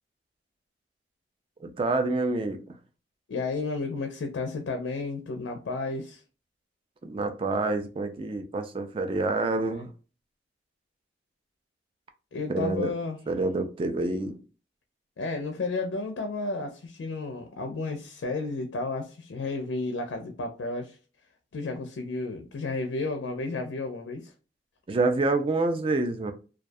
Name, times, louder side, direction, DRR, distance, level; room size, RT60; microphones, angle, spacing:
voice 1, 1.6-2.8 7.0-9.9 12.5-12.9 13.3-14.4 24.9-26.3, right 2 dB, 30° right, 0.3 m, -27 dB
voice 2, 3.3-6.2 9.7-9.9 12.3-13.2 15.2-21.0 21.5-24.3, left 3 dB, 85° left, 0.4 m, -32 dB
2.3 x 2.2 x 2.5 m
head